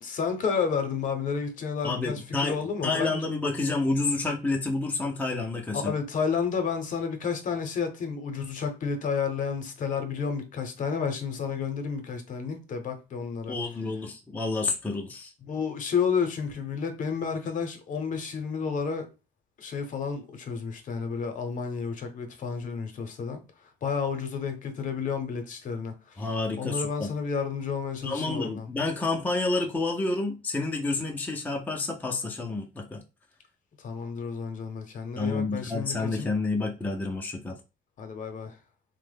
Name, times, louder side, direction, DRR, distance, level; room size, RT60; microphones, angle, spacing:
voice 1, 0.0-3.3 5.7-13.5 15.4-19.1 19.6-23.4 23.8-26.2 26.6-28.7 33.8-36.3 38.0-38.6, left 6 dB, 50° left, 0.7 m, -31 dB
voice 2, 1.8-5.9 13.5-15.3 26.2-27.1 28.0-33.0 35.2-37.6, left 3 dB, 10° left, 0.5 m, -29 dB
3.0 x 2.1 x 3.3 m
cardioid pair, 110°, 17 cm